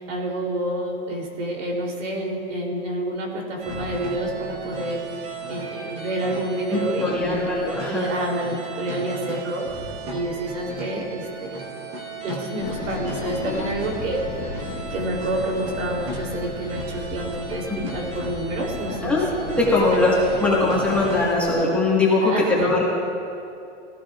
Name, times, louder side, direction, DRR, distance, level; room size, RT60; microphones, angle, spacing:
voice 1, 0.0-7.5 7.8-9.7 10.1-11.6 12.2-14.3 14.9-19.2 19.5-19.6 19.9-20.1 22.2-22.7, right 1 dB, 85° right, 0 dB, 3.1 m, -28 dB
sound 1, 3.6-21.3, right 3 dB, 25° right, 1.5 m, -36 dB
voice 2, 6.7-8.1 19.0-19.3 19.6-20.1 20.4-23.0, left 2 dB, 5° left, -6 dB, 1.5 m, -21 dB
sound 2, 12.6-21.5, left 4 dB, 40° left, 1.2 m, -35 dB
18.0 x 15.5 x 2.4 m, 2.5 s
supercardioid pair, 165°, 37 cm